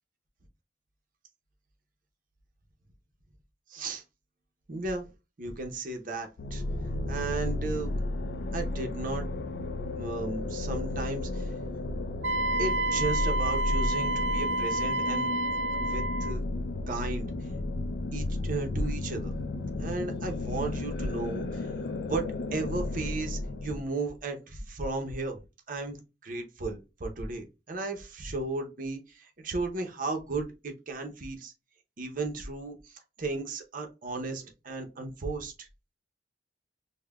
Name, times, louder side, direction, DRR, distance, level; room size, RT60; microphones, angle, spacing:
voice 1, 3.7-4.0 4.7-5.1 5.4-6.6 7.1-7.9 8.5-9.3 10.0-11.5 12.6-15.4 15.8-16.4 16.9-17.3 18.1-19.3 19.8-21.7 22.1-31.5 32.0-35.7, right 3 dB, 50° right, 4 dB, 0.7 m, -35 dB
sound 1, 6.4-23.8, left 2 dB, 60° left, 0.4 m, -33 dB
Wind instrument woodwind instrument, 12.2-16.4, right 2 dB, 70° right, 0.3 m, -29 dB
5.4 x 2.1 x 2.2 m, 0.27 s
head